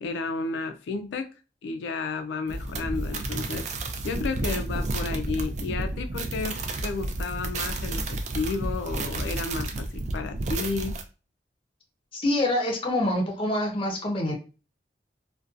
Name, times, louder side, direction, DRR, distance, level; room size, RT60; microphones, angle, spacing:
voice 1, 0.0-1.3 1.6-11.0, left 4 dB, 85° left, 6 dB, 0.3 m, -32 dB
sound 1, 2.5-11.0, right 2 dB, 40° right, 0.3 m, -31 dB
voice 2, 12.1-14.3, left 1 dB, 30° left, 2 dB, 0.5 m, -26 dB
2.5 x 2.2 x 2.4 m, 0.33 s
head